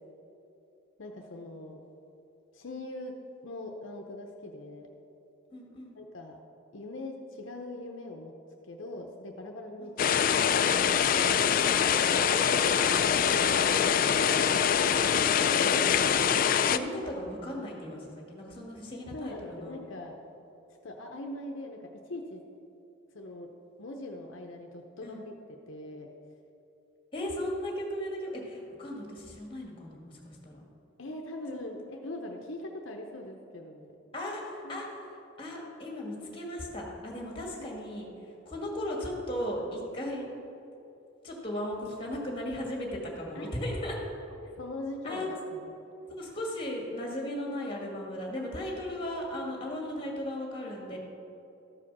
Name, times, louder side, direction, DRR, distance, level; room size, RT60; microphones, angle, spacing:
voice 1, 1.0-1.8 2.5-3.1 3.4-4.9 5.9-6.4 6.7-8.3 8.6-10.8 12.5-14.8 15.3-16.1 18.9-20.2 20.8-22.4 23.1-23.5 23.8-25.3 25.7-26.1 31.0-33.9 34.6-34.8 37.6-37.7 43.3-43.6 44.6-45.7, left 1 dB, 70° left, 2 dB, 0.7 m, -41 dB
voice 2, 5.5-6.0 9.8-9.9 11.1-11.7 16.6-19.7 25.0-25.2 27.1-30.6 31.5-31.6 34.1-35.1 35.4-40.3 41.2-44.0 45.0-45.4 46.1-51.0, left 1 dB, 25° left, -1 dB, 1.8 m, -36 dB
sound 1, 10.0-16.8, left 8 dB, 45° left, 0.3 m, -24 dB
13.5 x 5.0 x 6.0 m, 2.8 s
head